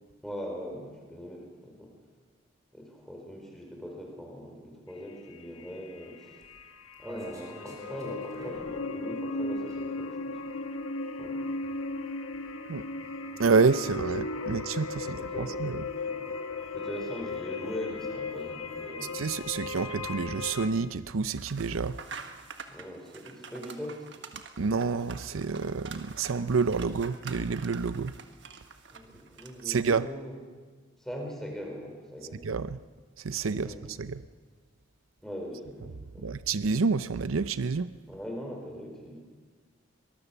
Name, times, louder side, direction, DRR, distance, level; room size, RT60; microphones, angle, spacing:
voice 1, 0.2-1.9 2.7-6.4 7.0-10.4 11.2-11.4 15.1-15.6 16.0-16.2 16.7-19.1 22.7-24.1 28.9-30.4 31.0-32.4 33.6-33.8 35.2-36.3 38.1-39.2, equal, ahead, 1 dB, 4.5 m, -41 dB
sound 1, 4.9-5.0 5.3-20.7, left 3 dB, 90° left, 1.5 m, -36 dB
sound 2, 6.4-10.0 10.3-21.2 21.5-21.6 21.8-22.1, equal, 15° right, 4.9 m, -54 dB
voice 2, 13.4-15.8 19.1-22.0 24.6-28.1 29.6-30.1 32.4-32.8 33.2-34.2 36.2-37.9, right 4 dB, 80° right, 14 dB, 0.6 m, -28 dB
sound 3, 21.3-29.8, right 5 dB, 60° right, 1.5 m, -46 dB
23.0 x 20.5 x 7.1 m, 1.4 s
head